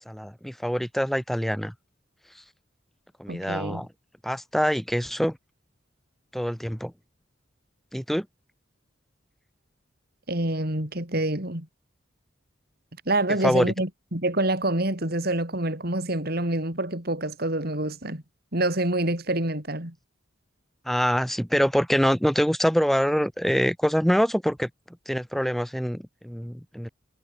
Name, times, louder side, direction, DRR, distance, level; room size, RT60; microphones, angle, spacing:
voice 1, 0.1-1.7 3.2-3.9 4.2-5.4 6.3-6.9 7.9-8.3 13.4-13.7 20.9-24.7 25.1-26.9, equal, ahead, 5.3 m, -25 dB
voice 2, 3.3-3.8 10.3-11.7 13.1-18.2 18.5-19.9, right 1 dB, 55° right, 4.8 m, -27 dB
head